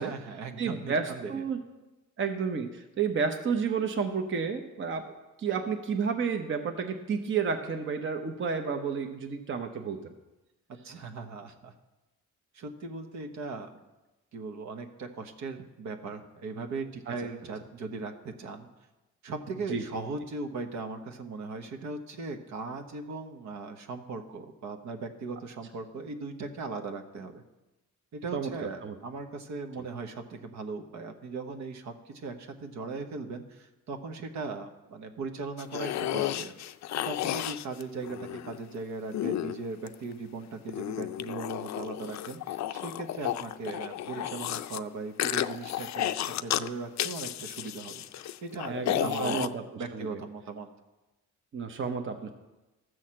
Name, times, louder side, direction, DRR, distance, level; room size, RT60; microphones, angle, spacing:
voice 1, 0.0-1.5 10.7-11.7 12.5-13.8 14.3-18.7 19.2-27.4 28.1-36.5 36.9-48.0 48.4-49.4 49.8-50.7, right 3 dB, 65° right, 6 dB, 1.2 m, -38 dB
voice 2, 0.6-1.6 2.2-5.1 5.4-10.0 17.1-17.2 19.7-19.8 28.3-28.5 28.8-28.9 48.7-49.6 49.9-50.1 51.5-52.3, right 6 dB, 40° right, 5 dB, 0.9 m, -31 dB
sound 1, 35.6-38.6 39.1-40.1 40.7-44.8 45.2-46.7 47.0-49.5, left 12 dB, 65° left, 0.5 m, -33 dB
13.5 x 6.4 x 7.5 m, 1.1 s
cardioid pair, 145°, 30 cm